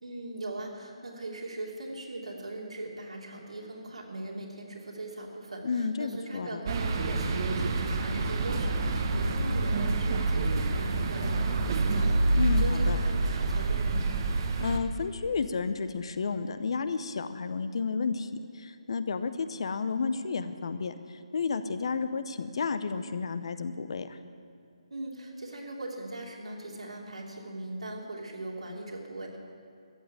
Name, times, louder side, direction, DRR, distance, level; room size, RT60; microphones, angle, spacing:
voice 1, 0.0-14.0 24.9-29.4, right 2 dB, 75° right, -1 dB, 2.9 m, -40 dB
voice 2, 5.6-6.6 12.3-13.0 14.6-24.2, left 5 dB, 55° left, 11 dB, 0.8 m, -32 dB
sound 1, 6.7-14.8, right 2 dB, 40° right, 1.1 m, -27 dB
14.0 x 8.0 x 8.6 m, 2.4 s
figure-of-eight pair, 150°, 3 cm